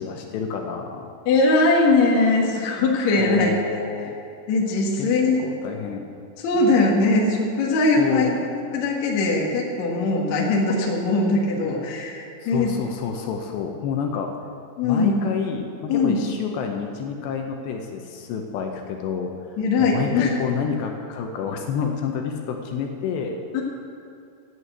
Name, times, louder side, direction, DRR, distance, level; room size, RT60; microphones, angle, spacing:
voice 1, 0.0-1.1 3.2-4.2 5.0-5.1 5.4-6.1 8.0-8.4 12.4-14.3 14.8-23.4, left 6 dB, 75° left, 3 dB, 2.7 m, -29 dB
voice 2, 1.3-3.5 4.5-5.4 6.4-12.7 14.8-15.3 15.9-16.2 19.6-20.3 23.5-23.6, left 3 dB, 60° left, -2 dB, 2.0 m, -21 dB
11.0 x 8.6 x 7.9 m, 2.4 s
omnidirectional pair, 5.5 m